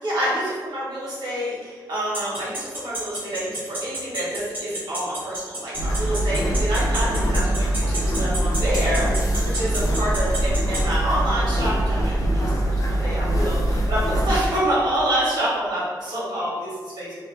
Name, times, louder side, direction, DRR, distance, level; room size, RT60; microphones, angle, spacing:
voice 1, 0.0-17.1, right 1 dB, 65° right, -8 dB, 1.2 m, -27 dB
sound 1, 2.1-10.8, right 2 dB, 25° right, 1.0 m, -30 dB
sound 2, 5.7-14.5, right 1 dB, 50° left, 0.3 m, -23 dB
2.7 x 2.2 x 3.2 m, 1.6 s
wide cardioid pair, 165°, 8 cm